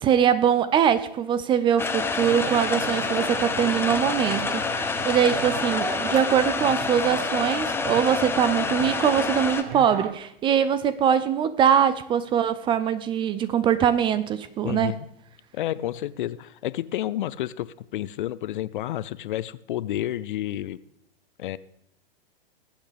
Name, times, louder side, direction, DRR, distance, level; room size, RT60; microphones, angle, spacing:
voice 1, 0.0-14.9, right 8 dB, 15° right, 0.4 m, -22 dB
sound 1, 1.8-9.6, left 4 dB, 10° left, 0.8 m, -27 dB
sound 2, 2.2-10.1, right 8 dB, 60° right, 0.9 m, -36 dB
voice 2, 14.6-15.1 15.5-20.8 21.4-21.6, left 13 dB, 60° left, 0.6 m, -30 dB
20.0 x 8.3 x 3.4 m
hypercardioid pair, 115°, 29 cm